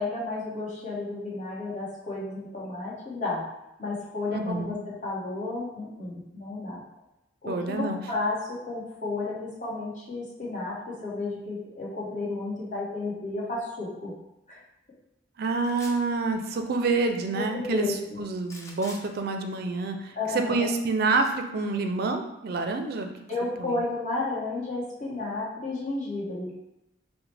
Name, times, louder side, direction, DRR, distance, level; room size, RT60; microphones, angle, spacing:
voice 1, 0.0-3.4 3.8-6.8 7.4-14.1 14.5-14.6 17.3-18.2 20.1-20.7 23.3-26.5, left 2 dB, 40° left, -7 dB, 1.2 m, -32 dB
voice 2, 4.3-4.8 7.5-8.0 15.4-23.1 23.6-23.8, right 3 dB, 55° right, 5 dB, 0.4 m, -28 dB
sound 1, 15.6-16.1 18.4-19.0 21.2-21.3, left 1 dB, 15° left, 0.5 m, -44 dB
4.7 x 2.1 x 3.3 m, 0.89 s
head